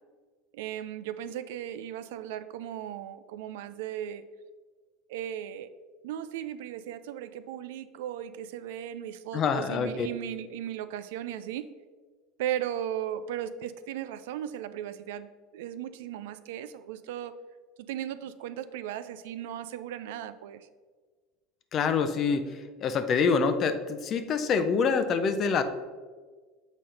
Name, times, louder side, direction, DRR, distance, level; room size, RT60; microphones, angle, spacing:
voice 1, 0.5-4.2 5.1-5.7 6.0-11.7 12.4-17.3 17.9-20.7, right 11 dB, 75° right, 12 dB, 0.3 m, -36 dB
voice 2, 9.3-10.1 21.7-25.6, left 5 dB, 45° left, 10 dB, 0.6 m, -26 dB
7.1 x 4.2 x 3.8 m, 1.4 s
hypercardioid pair, 90°, 0 cm